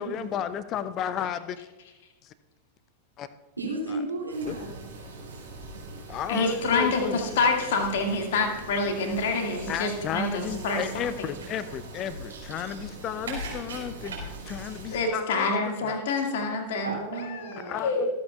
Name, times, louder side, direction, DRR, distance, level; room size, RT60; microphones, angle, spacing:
voice 1, 0.0-1.6 2.2-2.3 3.2-3.3 3.9-4.0 4.5-4.6 6.1-7.2 9.7-16.0 17.6-18.1, left 9 dB, 35° left, 14 dB, 0.5 m, -33 dB
voice 2, 3.6-4.7 16.8-17.9, right 2 dB, 80° right, -2 dB, 3.0 m, -33 dB
sound 1, 4.3-15.0, right 2 dB, 65° right, 4.3 m, -41 dB
voice 3, 6.3-10.8 14.9-16.9 17.4-18.0, left 3 dB, 55° left, 3 dB, 2.0 m, -27 dB
25.0 x 8.6 x 2.4 m, 1.2 s
figure-of-eight pair, 90°, 0 cm